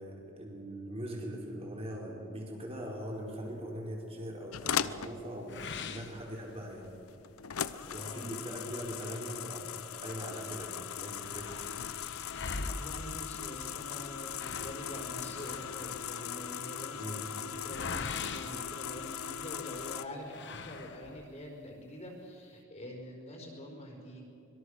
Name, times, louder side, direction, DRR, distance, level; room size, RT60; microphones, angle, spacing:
voice 1, 0.0-6.9 7.9-9.7 10.0-11.6 17.0-17.2, equal, 30° right, -1 dB, 5.0 m, -41 dB
sound 1, 4.5-20.1, left 8 dB, 85° left, 0.8 m, -39 dB
sound 2, 5.5-6.9 7.4-7.5 7.9-8.0 8.8-10.2 10.5-10.6 10.8-19.5 20.2-21.4, left 4 dB, 55° left, 1.2 m, -43 dB
voice 2, 7.8-8.3 12.6-24.2, equal, 30° left, 0 dB, 4.8 m, -45 dB
25.0 x 23.0 x 6.6 m, 2.7 s
head